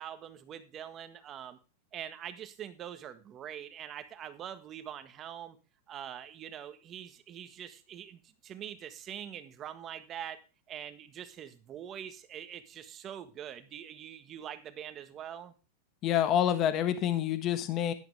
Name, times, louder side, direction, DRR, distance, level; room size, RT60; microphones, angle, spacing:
voice 1, 0.0-1.6 1.9-5.6 5.9-10.4 10.7-15.5, right 9 dB, 30° right, 10 dB, 1.5 m, -44 dB
voice 2, 16.0-17.9, left 10 dB, 35° left, 10 dB, 1.4 m, -27 dB
12.0 x 11.0 x 3.4 m, 0.31 s
supercardioid pair, 145°, 0 cm